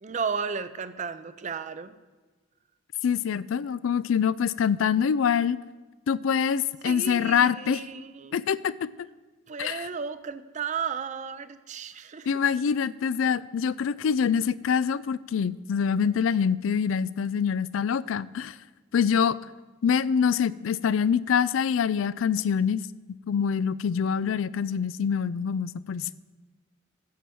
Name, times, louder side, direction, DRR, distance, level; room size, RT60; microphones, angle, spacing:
voice 1, 0.0-1.9 6.8-8.4 9.5-12.3, right 6 dB, 35° right, 13 dB, 0.5 m, -34 dB
voice 2, 3.0-5.6 6.1-7.8 8.3-8.9 9.6-9.9 12.3-18.5 18.9-19.4 19.8-22.8 23.3-26.1, left 7 dB, 75° left, 19 dB, 0.4 m, -25 dB
9.4 x 7.6 x 7.0 m, 1.3 s
head